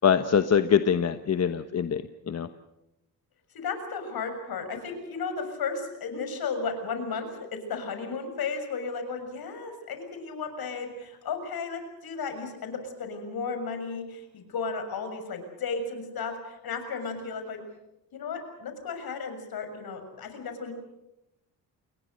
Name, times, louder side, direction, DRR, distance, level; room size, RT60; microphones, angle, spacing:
voice 1, 0.0-2.5, left 7 dB, 40° left, 9 dB, 1.2 m, -24 dB
voice 2, 3.5-7.4 7.7-17.6 18.1-20.7, left 5 dB, 65° left, 7 dB, 6.8 m, -34 dB
29.5 x 22.0 x 6.6 m, 0.89 s
cardioid pair, 100°, 40 cm